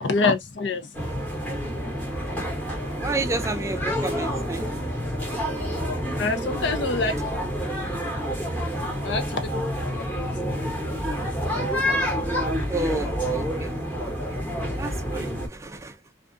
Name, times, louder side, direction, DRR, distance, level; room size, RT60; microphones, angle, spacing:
voice 1, 0.0-0.9 6.2-7.1 9.0-9.4 10.1-10.3, left 3 dB, 85° left, 0.6 m, -25 dB
sound 1, 0.9-15.5, equal, 10° left, 1.0 m, -28 dB
voice 2, 3.0-4.7 12.7-13.7 14.0-14.4 14.8-16.0, right 2 dB, 15° right, 0.3 m, -31 dB
2.5 x 2.3 x 2.4 m
head